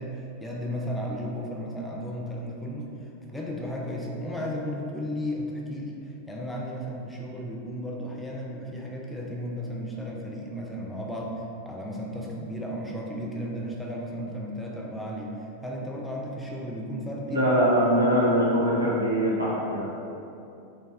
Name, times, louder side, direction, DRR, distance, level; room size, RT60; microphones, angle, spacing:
voice 1, 0.0-17.4, equal, 5° left, -3 dB, 0.5 m, -34 dB
voice 2, 17.3-19.9, equal, 80° right, -7 dB, 1.0 m, -22 dB
4.6 x 2.3 x 3.4 m, 2.7 s
figure-of-eight pair, 90°, 0 cm